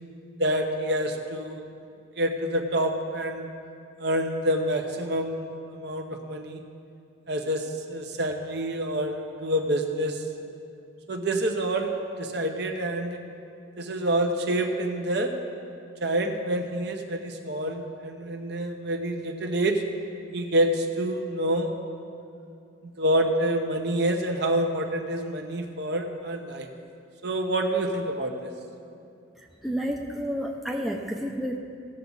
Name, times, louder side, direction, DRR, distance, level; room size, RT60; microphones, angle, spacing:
voice 1, 0.4-1.6 2.2-3.5 4.0-6.6 7.3-10.2 11.1-13.2 13.8-15.3 16.0-19.8 20.3-21.8 22.8-26.7 27.2-28.5, right 1 dB, 55° right, 3 dB, 0.9 m, -27 dB
voice 2, 29.4-31.6, equal, ahead, 0 dB, 0.6 m, -30 dB
17.5 x 7.1 x 4.0 m, 2.6 s
head